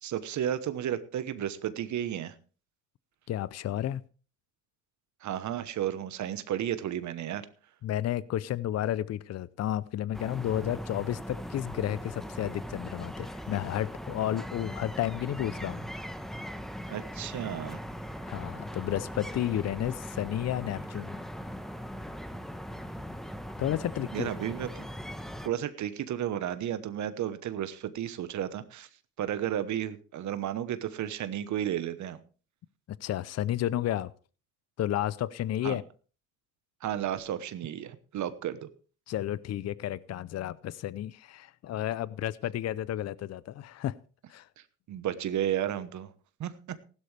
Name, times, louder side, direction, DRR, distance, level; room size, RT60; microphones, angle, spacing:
voice 1, 0.0-2.3 5.2-7.4 16.9-17.8 24.1-24.8 25.4-28.9 29.2-32.2 35.6-35.8 36.8-38.7 44.9-46.1 46.4-46.8, right 10 dB, 70° right, 1.1 m, -33 dB
voice 2, 3.3-4.0 7.8-15.8 18.2-21.2 23.6-24.3 33.0-34.1 34.8-35.8 39.1-44.0 44.3-44.5, left 12 dB, 60° left, 0.6 m, -32 dB
sound 1, 10.1-25.5, equal, ahead, 1.1 m, -40 dB
15.5 x 12.0 x 3.3 m
cardioid pair, 90°, 30 cm